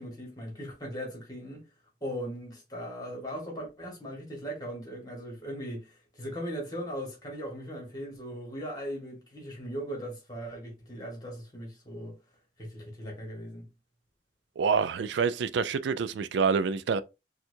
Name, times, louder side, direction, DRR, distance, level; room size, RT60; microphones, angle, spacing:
voice 1, 0.0-1.7 2.0-12.2 12.6-13.7, equal, 20° left, 1.5 m, -39 dB
voice 2, 14.6-17.0, right 5 dB, 75° right, 0.3 m, -27 dB
4.3 x 2.3 x 2.6 m
head